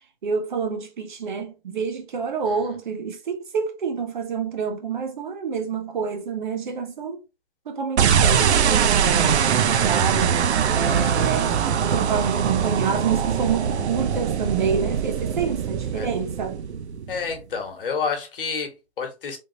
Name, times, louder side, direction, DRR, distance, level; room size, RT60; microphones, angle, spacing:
voice 1, 0.2-7.2 7.7-10.4 10.7-16.6, right 6 dB, 45° right, 0.7 m, -28 dB
voice 2, 2.4-2.8 15.9-16.1 17.1-19.4, left 5 dB, 55° left, 1.3 m, -29 dB
sound 1, 8.0-17.4, right 7 dB, 85° right, 0.6 m, -22 dB
3.6 x 2.6 x 2.7 m
hypercardioid pair, 170°, 32 cm